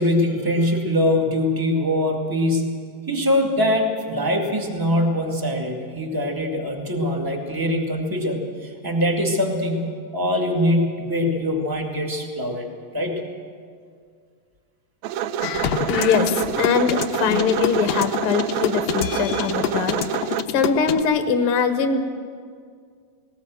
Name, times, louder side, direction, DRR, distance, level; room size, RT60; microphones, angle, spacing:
voice 1, 0.0-2.8 3.1-12.7 12.9-13.2, left 1 dB, 10° right, 1 dB, 1.1 m, -23 dB
sound 1, 15.0-20.4, right 10 dB, 85° right, 2.4 m, -27 dB
sound 2, 15.4-21.0, left 9 dB, 90° left, 1.4 m, -26 dB
voice 2, 15.9-22.0, left 6 dB, 65° left, 7 dB, 1.4 m, -22 dB
19.0 x 18.5 x 7.8 m, 2.1 s
omnidirectional pair, 4.0 m